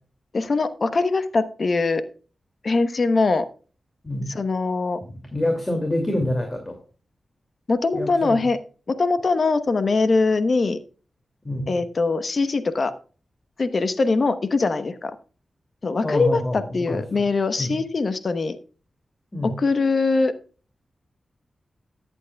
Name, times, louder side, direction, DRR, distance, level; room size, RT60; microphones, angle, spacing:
voice 1, 0.3-2.0 2.6-3.5 4.3-5.0 7.7-8.6 8.9-10.8 11.7-12.9 13.6-15.2 15.8-18.6 19.4-20.3, left 3 dB, 60° left, 12 dB, 1.0 m, -22 dB
voice 2, 5.0-6.8 7.9-8.4 11.4-11.7 16.0-17.2 17.6-17.7 19.3-19.6, left 1 dB, 25° left, 3 dB, 2.5 m, -27 dB
14.0 x 8.3 x 2.3 m, 0.37 s
cardioid pair, 45°, 0 cm